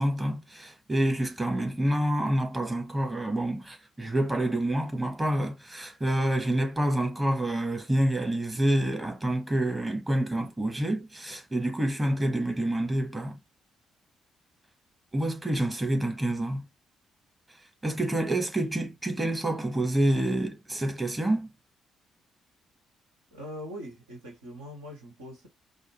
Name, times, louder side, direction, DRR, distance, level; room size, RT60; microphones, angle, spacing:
voice 1, 0.0-13.4 15.1-16.7 17.8-21.5, right 1 dB, 15° right, 1.2 m, -27 dB
voice 2, 23.3-25.5, equal, 75° right, 1.3 m, -42 dB
4.8 x 2.1 x 3.0 m
figure-of-eight pair, 40°, 0 cm